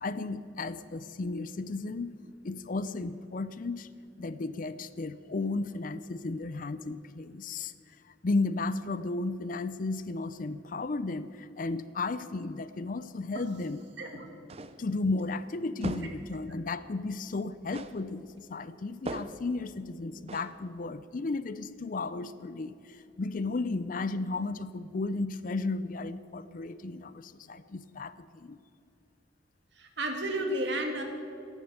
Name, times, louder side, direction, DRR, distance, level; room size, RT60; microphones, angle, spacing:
voice 1, 0.0-2.2 2.4-3.9 4.2-7.7 8.2-13.8 14.8-28.6, left 3 dB, 45° left, 14 dB, 0.5 m, -34 dB
sound 1, 14.5-14.9 15.8-16.3 17.7-18.1 19.1-19.5 20.3-20.6, right 2 dB, 30° right, 0.6 m, -38 dB
voice 2, 29.8-31.0, right 1 dB, 65° right, 3 dB, 2.1 m, -32 dB
13.5 x 11.5 x 8.0 m, 2.6 s
head